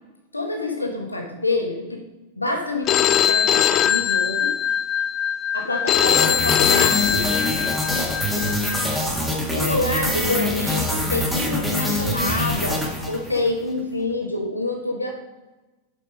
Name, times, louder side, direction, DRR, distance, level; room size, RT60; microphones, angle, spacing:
voice 1, 0.3-2.0 2.4-4.6 5.5-7.3 8.0-8.5 9.5-15.1, left 2 dB, 85° left, 1 dB, 1.2 m, -27 dB
Telephone, 2.9-8.8, left 9 dB, 35° left, 0.3 m, -21 dB
sound 1, 6.0-13.5, left 1 dB, 5° right, 1.7 m, -24 dB
7.4 x 5.3 x 5.1 m, 1.1 s
figure-of-eight pair, 90°, 0 cm